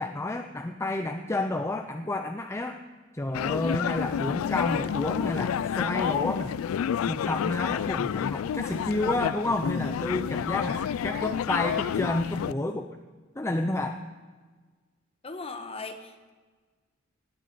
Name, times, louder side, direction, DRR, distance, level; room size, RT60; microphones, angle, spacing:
voice 1, 0.0-2.8 3.1-6.8 7.1-13.0 13.4-14.0, left 2 dB, 15° left, 6 dB, 0.5 m, -30 dB
sound 1, 3.3-12.5, left 8 dB, 90° left, 0.3 m, -29 dB
voice 2, 15.2-16.3, left 3 dB, 30° left, 7 dB, 1.1 m, -38 dB
18.0 x 9.6 x 5.4 m, 1.4 s
head